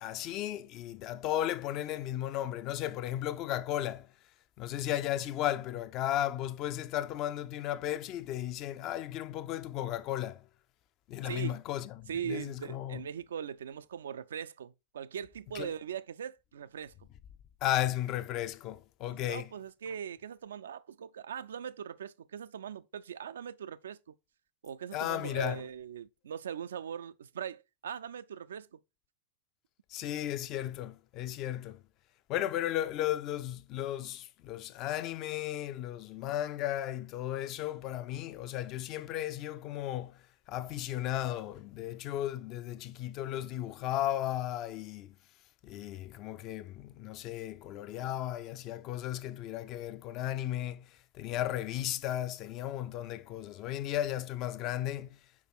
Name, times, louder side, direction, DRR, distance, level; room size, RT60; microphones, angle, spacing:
voice 1, 0.0-4.1 4.6-10.5 11.1-13.0 15.5-15.7 17.6-19.5 24.9-25.6 29.9-31.8 32.3-45.2 45.6-55.2, left 12 dB, 40° left, 0.4 m, -35 dB
voice 2, 11.2-11.6 12.1-16.9 19.2-24.1 24.6-28.8, right 8 dB, 65° right, 0.3 m, -40 dB
4.8 x 4.7 x 4.4 m
figure-of-eight pair, 90°, 0 cm